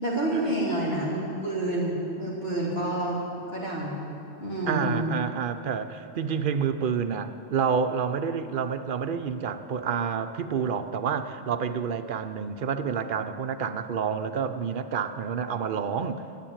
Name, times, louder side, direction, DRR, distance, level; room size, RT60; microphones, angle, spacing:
voice 1, 0.0-3.2 3.5-4.0 4.4-5.0, right 1 dB, 55° left, -6 dB, 3.4 m, -28 dB
voice 2, 4.7-16.2, right 6 dB, 55° right, 9 dB, 0.7 m, -29 dB
12.0 x 7.7 x 8.8 m, 2.8 s
omnidirectional pair, 1.2 m